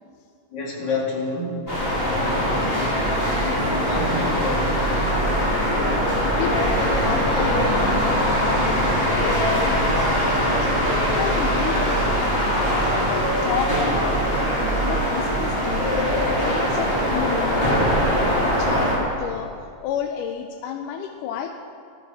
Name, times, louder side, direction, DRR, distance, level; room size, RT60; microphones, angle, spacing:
voice 1, 0.5-1.8 3.9-4.9, left 2 dB, 35° left, -3 dB, 2.5 m, -28 dB
sound 1, 1.7-19.0, equal, 15° left, 3.3 m, -21 dB
voice 2, 2.1-2.9 5.3-6.1 6.4-10.7 11.2-15.9 16.2-19.5 19.8-21.5, left 8 dB, 80° left, 5 dB, 2.1 m, -32 dB
14.5 x 14.5 x 4.9 m, 2.4 s
omnidirectional pair, 4.0 m